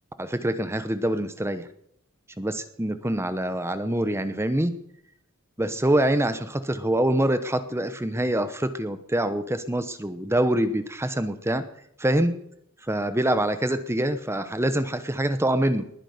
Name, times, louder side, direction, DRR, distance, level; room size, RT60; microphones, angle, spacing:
voice 1, 0.2-1.7 2.4-4.8 5.6-11.7 12.0-12.4 12.9-15.9, right 1 dB, 10° right, 11 dB, 0.9 m, -25 dB
20.5 x 9.9 x 6.7 m, 0.73 s
head